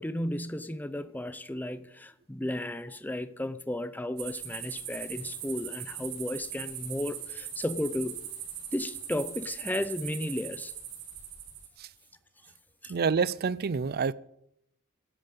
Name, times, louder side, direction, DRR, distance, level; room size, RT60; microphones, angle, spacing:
voice 1, 0.0-8.2 8.7-10.7 12.8-12.9, left 1 dB, 10° left, 0.6 m, -34 dB
sound 1, 4.2-11.7, right 9 dB, 80° right, 2.5 m, -40 dB
voice 2, 12.9-14.1, right 5 dB, 45° right, 0.5 m, -27 dB
12.0 x 9.1 x 7.5 m
head